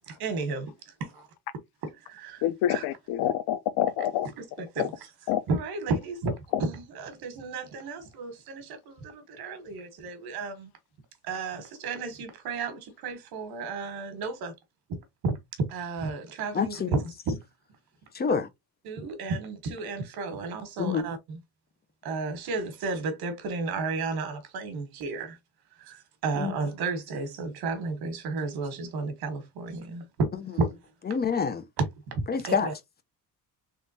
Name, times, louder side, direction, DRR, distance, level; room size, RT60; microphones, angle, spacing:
voice 1, 0.1-0.7 1.0-1.1 1.8-2.4 2.7-2.8 4.4-4.9 5.5-6.3 6.6-10.7 11.2-14.5 15.2-17.0 18.8-21.4 22.0-25.4 25.8-30.7 31.8-32.7, right 3 dB, 90° right, 1.3 m, -32 dB
voice 2, 2.4-4.3 4.8-4.9 5.3-5.4 6.5-6.6, left 11 dB, 90° left, 0.5 m, -27 dB
voice 3, 16.5-16.9 18.1-18.5 20.8-21.0 26.3-26.5 31.1-31.6 32.3-32.7, left 6 dB, 25° left, 0.5 m, -27 dB
3.6 x 3.1 x 2.7 m
cardioid pair, 135°, 37 cm